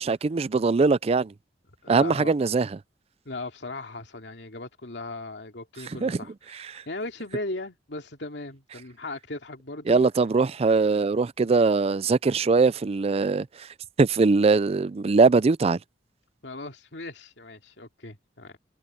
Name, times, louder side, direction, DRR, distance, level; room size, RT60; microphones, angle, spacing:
voice 1, 0.0-1.3 1.9-2.7 6.0-6.2 6.7-6.8 9.9-13.5 14.0-15.8, right 4 dB, 35° right, 0.4 m, -21 dB
voice 2, 1.8-2.3 3.2-10.0 16.4-18.6, left 2 dB, 80° left, 2.6 m, -37 dB
head